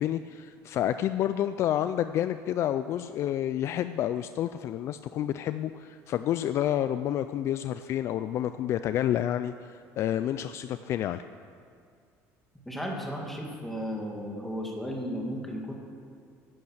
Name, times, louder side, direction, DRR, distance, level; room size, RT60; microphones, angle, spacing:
voice 1, 0.0-11.2, left 11 dB, 50° left, 11 dB, 0.4 m, -29 dB
voice 2, 12.7-15.7, equal, 5° left, -1 dB, 2.1 m, -34 dB
12.0 x 8.7 x 7.8 m, 2.3 s
cardioid pair, 140°, 6 cm